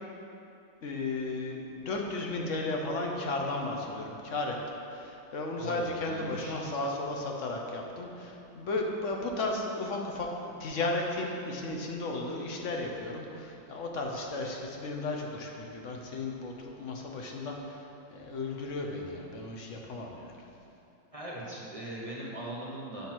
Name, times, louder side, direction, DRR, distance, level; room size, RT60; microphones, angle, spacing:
voice 1, 0.8-4.6 4.9-20.4, left 2 dB, 55° left, 1 dB, 0.9 m, -34 dB
voice 2, 5.6-6.5 21.1-23.1, right 1 dB, 25° right, -5 dB, 0.8 m, -40 dB
8.2 x 5.2 x 6.0 m, 2.8 s
omnidirectional pair, 2.1 m